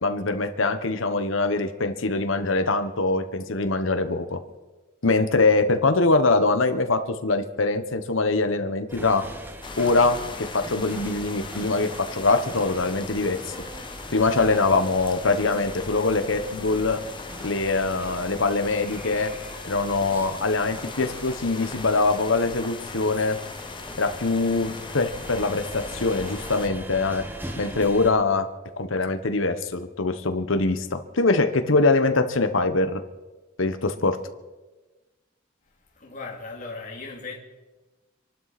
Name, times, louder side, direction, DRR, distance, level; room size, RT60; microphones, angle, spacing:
voice 1, 0.0-4.4 5.0-9.2 9.8-13.5 14.1-17.0 17.4-19.3 19.6-23.4 24.0-27.2 27.6-28.5 28.8-33.0 33.6-34.2, left 3 dB, 85° left, 8 dB, 1.2 m, -23 dB
sound 1, 8.9-28.1, equal, 10° right, 1.2 m, -41 dB
sound 2, 9.6-26.7, left 4 dB, 25° left, 1.0 m, -40 dB
voice 2, 35.9-37.4, left 3 dB, 40° left, -1 dB, 2.8 m, -37 dB
26.5 x 12.0 x 4.2 m, 1.2 s
head